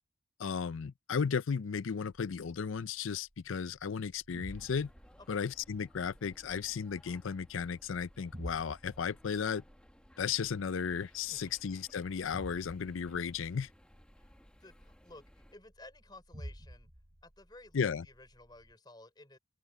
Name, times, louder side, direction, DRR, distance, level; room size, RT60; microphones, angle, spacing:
voice 1, 0.4-4.9 5.3-9.6 10.2-13.7 17.7-18.0, left 6 dB, 80° left, 0.5 m, -35 dB
sound 1, 2.9-18.7, equal, 35° right, 2.9 m, -53 dB
sound 2, 4.5-15.5, equal, 5° left, 1.6 m, -60 dB
voice 2, 5.2-5.5 11.3-11.5 14.2-16.9 17.2-19.4, left 2 dB, 20° left, 4.4 m, -55 dB
open air
head